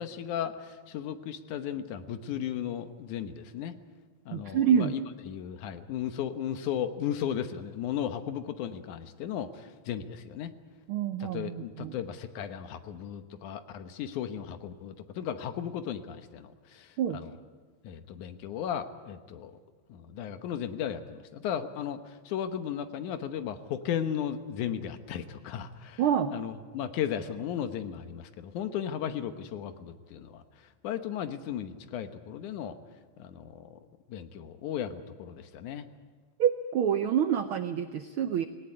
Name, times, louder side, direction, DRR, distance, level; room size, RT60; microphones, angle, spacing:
voice 1, 0.0-3.8 4.3-5.0 5.3-10.5 11.2-17.3 17.8-19.6 19.9-26.0 26.3-30.4 30.8-32.8 33.2-33.8 34.1-35.9, left 9 dB, 90° left, 9 dB, 2.6 m, -35 dB
voice 2, 4.3-4.9 10.9-11.9 17.0-17.2 26.0-26.3 36.4-38.5, right 9 dB, 85° right, 10 dB, 1.1 m, -27 dB
19.0 x 18.5 x 9.8 m, 1.5 s
omnidirectional pair, 3.4 m